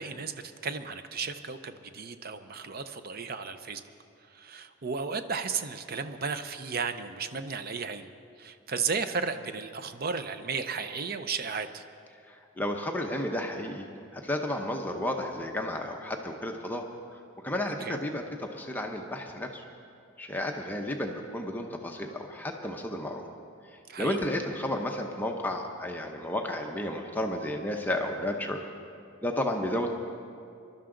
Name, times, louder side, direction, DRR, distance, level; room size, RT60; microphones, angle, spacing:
voice 1, 0.0-3.8 4.3-8.1 8.4-11.8 17.8-18.0 23.9-24.2, right 5 dB, 45° right, 10 dB, 0.6 m, -34 dB
voice 2, 12.6-13.9 14.1-16.8 17.4-19.6 20.2-23.2 24.0-28.6 29.2-29.9, left 1 dB, 10° left, 2 dB, 0.7 m, -32 dB
22.0 x 12.5 x 3.8 m, 2.5 s
head